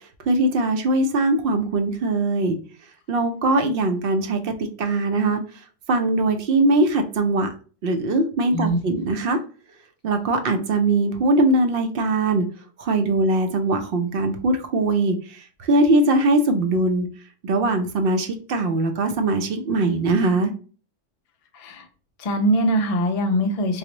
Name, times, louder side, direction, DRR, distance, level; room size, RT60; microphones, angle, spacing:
voice 1, 0.3-2.6 3.1-5.4 5.9-7.5 7.8-9.4 10.0-12.5 12.8-17.1 17.4-20.5, right 2 dB, 60° right, 6 dB, 0.6 m, -21 dB
voice 2, 21.5-21.8 22.2-23.8, right 1 dB, 45° left, 3 dB, 0.4 m, -22 dB
4.7 x 2.0 x 2.9 m, 0.39 s
omnidirectional pair, 1.3 m